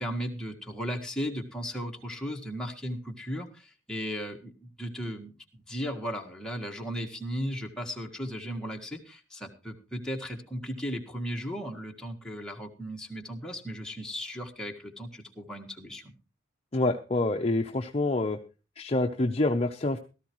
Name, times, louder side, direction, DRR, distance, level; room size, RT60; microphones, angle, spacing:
voice 1, 0.0-5.3 5.7-16.1, equal, 5° left, 0 dB, 1.6 m, -36 dB
voice 2, 16.7-18.4 18.8-20.0, left 2 dB, 30° left, 4 dB, 0.7 m, -27 dB
17.0 x 13.5 x 3.1 m, 0.32 s
head